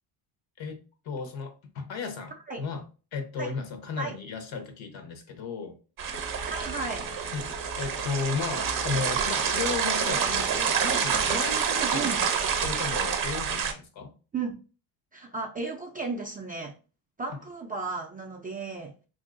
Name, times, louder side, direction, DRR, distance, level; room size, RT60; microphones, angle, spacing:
voice 1, 1.0-2.8 3.1-5.8 7.3-7.5 7.8-14.1 17.3-17.4, left 5 dB, 65° left, 0.9 m, -34 dB
sound 1, 6.0-13.7, right 7 dB, 40° right, 0.7 m, -28 dB
Telephone, 6.1-13.1, left 2 dB, 40° left, 0.6 m, -44 dB
voice 2, 6.5-7.2 11.7-12.2 14.3-14.6 15.1-16.7 17.2-18.9, right 4 dB, 20° right, 0.3 m, -34 dB
2.9 x 2.7 x 2.5 m
cardioid pair, 95°, 50 cm